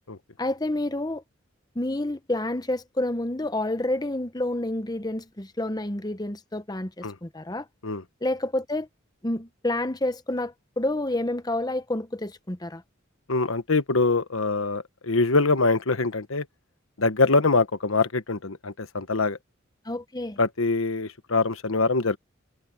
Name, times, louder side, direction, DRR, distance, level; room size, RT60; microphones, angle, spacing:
voice 1, 0.4-1.2 1.7-7.7 8.2-8.9 9.2-12.8 19.8-20.4, left 1 dB, 20° left, 1.0 m, -29 dB
voice 2, 13.3-16.5 17.0-19.4 20.4-22.2, left 3 dB, 85° left, 1.2 m, -24 dB
head